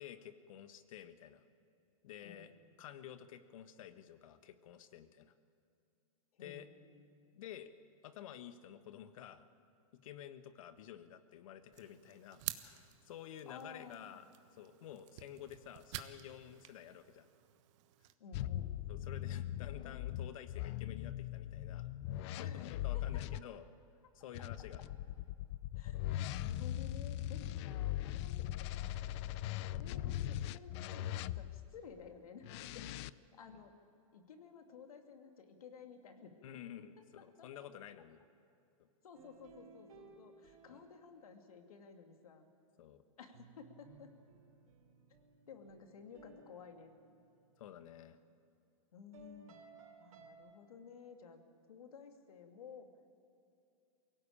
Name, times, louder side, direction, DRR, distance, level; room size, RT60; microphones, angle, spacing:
voice 1, 0.0-1.4 2.0-2.5 2.8-5.3 6.4-6.7 7.3-7.7 8.0-9.5 10.0-17.3 18.9-23.7 24.1-24.8 33.5-33.6 36.4-38.2 38.8-38.9 40.7-40.9 42.8-43.0 47.6-48.2, left 10 dB, 70° left, 10 dB, 1.5 m, -51 dB
voice 2, 2.2-2.6 6.3-7.4 13.5-14.3 18.2-18.8 22.4-23.4 25.8-28.9 29.8-32.9 33.3-33.7 34.1-36.4 37.2-37.5 39.0-42.5 43.2-44.1 45.5-46.9 48.9-49.6 50.0-51.4 51.7-52.9, left 6 dB, 85° left, 5 dB, 2.5 m, -54 dB
sound 1, 11.7-18.1, right 14 dB, 55° right, 1.3 m, -50 dB
sound 2, 18.3-23.4 24.3-31.7 32.4-33.1, left 13 dB, 50° left, 0.6 m, -40 dB
sound 3, 39.1-42.0 43.3-47.9 49.1-50.3, right 4 dB, 75° right, 3.5 m, -61 dB
23.0 x 17.0 x 8.6 m, 2.5 s
hypercardioid pair, 130°, 18 cm